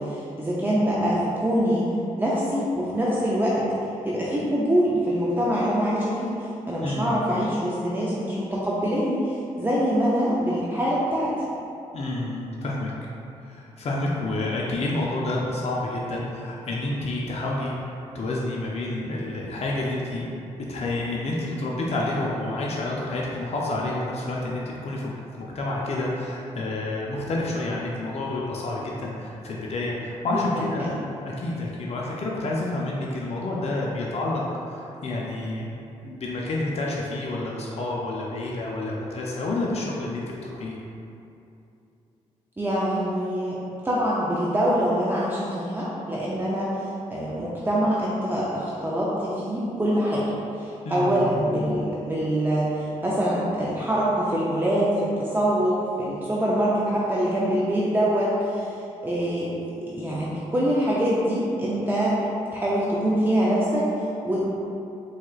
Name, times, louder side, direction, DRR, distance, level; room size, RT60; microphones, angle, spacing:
voice 1, 0.0-1.9 2.2-3.7 4.0-11.3 30.5-31.0 42.6-43.6 43.8-50.3 50.6-58.7 59.0-62.2 62.5-64.4, equal, 15° right, -7 dB, 0.5 m, -24 dB
voice 2, 6.8-7.2 11.9-12.9 13.4-20.3 20.6-34.4 34.7-40.8 50.8-51.4, left 2 dB, 50° left, -3 dB, 0.5 m, -29 dB
4.2 x 2.3 x 2.4 m, 2.8 s
supercardioid pair, 60°, 14 cm